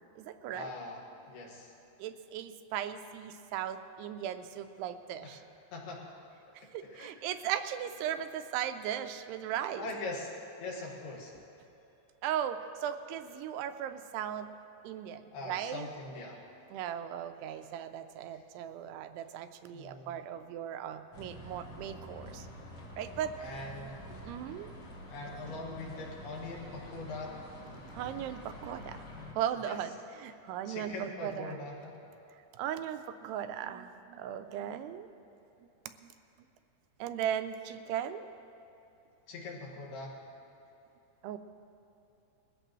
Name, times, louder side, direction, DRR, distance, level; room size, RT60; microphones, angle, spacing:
voice 1, 0.0-0.7 2.0-5.4 6.6-9.9 12.2-14.5 14.8-15.9 16.7-22.5 23.0-23.3 24.3-24.7 27.9-31.6 32.5-35.1 36.0-36.1 37.0-38.3 41.2-41.4, right 10 dB, 85° right, 8 dB, 2.7 m, -37 dB
voice 2, 0.5-1.7 5.2-5.4 5.7-6.2 6.5-7.1 9.8-11.3 15.3-16.4 18.3-18.4 19.7-20.2 23.4-24.0 25.1-27.4 29.6-29.8 30.7-32.0 39.3-40.2, left 2 dB, 75° left, -2 dB, 3.7 m, -42 dB
sound 1, 21.1-29.3, equal, 50° left, 1.4 m, -47 dB
21.0 x 14.5 x 3.1 m, 3.0 s
omnidirectional pair, 4.7 m